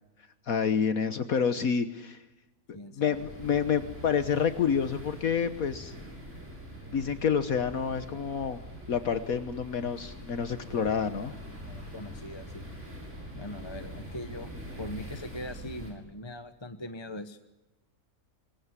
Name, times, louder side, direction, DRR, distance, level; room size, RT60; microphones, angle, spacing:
voice 1, 0.5-2.2 3.0-5.9 6.9-8.6 8.9-11.3, left 7 dB, 65° left, 10 dB, 1.6 m, -28 dB
voice 2, 2.7-3.2 11.7-12.7 13.3-14.5 14.8-17.4, left 1 dB, 20° left, 9 dB, 1.2 m, -41 dB
sound 1, 3.1-15.9, equal, 50° right, 7.4 m, -44 dB
26.0 x 22.5 x 9.8 m, 1.0 s
omnidirectional pair, 1.6 m